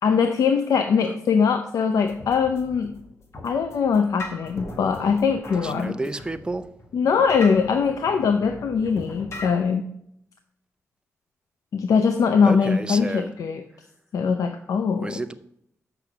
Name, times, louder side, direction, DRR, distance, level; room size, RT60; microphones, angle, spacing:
voice 1, 0.0-3.0 3.4-6.0 6.9-9.9 11.7-13.6 14.1-15.2, left 6 dB, 85° left, 0.6 m, -22 dB
sound 1, 2.0-9.5, left 1 dB, 55° left, 1.8 m, -40 dB
voice 2, 5.5-6.7 12.4-13.3 15.0-15.3, right 2 dB, 15° right, 0.6 m, -30 dB
6.9 x 6.0 x 6.8 m
wide cardioid pair, 100°, 6 cm